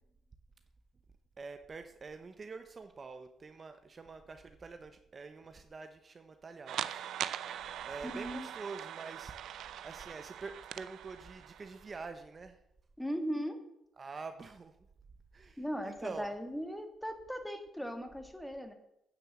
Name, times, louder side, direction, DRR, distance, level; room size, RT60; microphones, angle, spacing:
voice 1, 1.4-7.0 7.8-9.4 9.8-12.6 14.0-14.8 15.3-16.3, right 4 dB, 35° right, 8 dB, 0.9 m, -46 dB
sound 1, 6.7-11.9, right 10 dB, 75° right, 0.5 m, -42 dB
voice 2, 8.0-8.5 13.0-13.6 15.6-18.7, equal, 5° left, 6 dB, 1.7 m, -38 dB
9.5 x 7.0 x 7.3 m, 0.80 s
cardioid pair, 90°, 0 cm